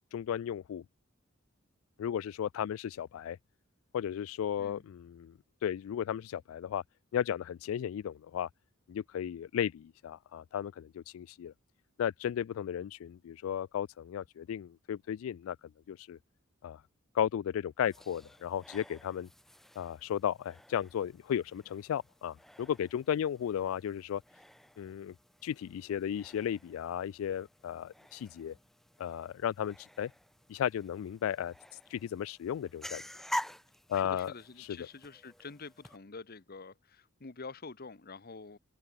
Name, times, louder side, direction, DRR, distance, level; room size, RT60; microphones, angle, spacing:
voice 1, 0.1-0.8 2.0-3.4 3.9-5.3 5.6-6.8 7.1-8.5 8.9-11.5 12.0-15.6 15.9-16.2 16.6-16.8 17.1-19.3 19.8-24.2 24.8-25.1 25.4-28.5 29.0-30.1 30.5-31.5 31.9-33.0 33.9-34.3 34.6-34.9, left 9 dB, 85° left, 0.3 m, -34 dB
sound 1, 17.8-36.0, equal, ahead, 0.4 m, -48 dB
voice 2, 33.9-38.6, left 4 dB, 50° left, 1.0 m, -47 dB
head